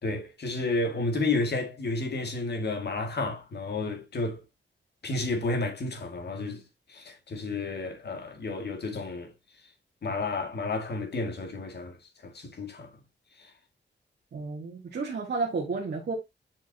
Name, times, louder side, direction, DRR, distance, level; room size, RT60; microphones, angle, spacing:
voice 1, 0.0-4.4 5.0-6.6 6.9-9.3 10.0-12.0 12.2-12.9 13.4-13.5, left 3 dB, 60° left, 2.0 m, -31 dB
voice 2, 14.3-16.1, right 4 dB, 60° right, 1.6 m, -32 dB
7.5 x 5.7 x 2.8 m
wide cardioid pair, 145°, 19 cm